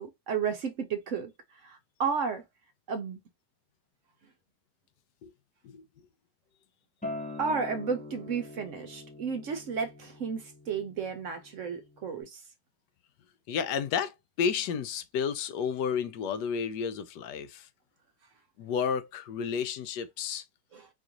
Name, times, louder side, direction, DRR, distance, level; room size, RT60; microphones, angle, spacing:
voice 1, 0.0-1.3 1.6-2.4 2.9-3.2 7.4-12.4 20.7-20.8, right 6 dB, 60° right, 0.9 m, -33 dB
Acoustic guitar, 7.0-12.2, left 2 dB, 10° left, 0.5 m, -43 dB
voice 2, 13.5-17.7 18.6-20.4, left 7 dB, 85° left, 1.2 m, -31 dB
4.2 x 2.5 x 2.8 m
omnidirectional pair, 1.8 m